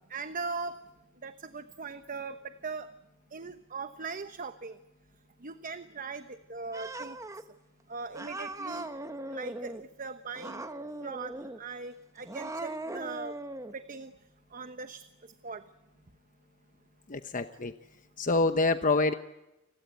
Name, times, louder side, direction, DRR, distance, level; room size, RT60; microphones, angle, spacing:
voice 1, 0.1-0.8 1.2-2.9 3.3-4.8 5.4-7.2 7.9-8.9 9.3-10.6 11.0-13.4 13.7-14.1 14.5-15.6, right 4 dB, 40° right, 10 dB, 1.0 m, -40 dB
Cat, 6.7-7.4 8.1-9.8 10.3-11.6 12.2-13.7, right 2 dB, 15° right, 1.1 m, -39 dB
voice 2, 17.1-17.7 18.2-19.1, left 3 dB, 40° left, 9 dB, 1.0 m, -26 dB
29.5 x 21.0 x 9.3 m, 0.96 s
head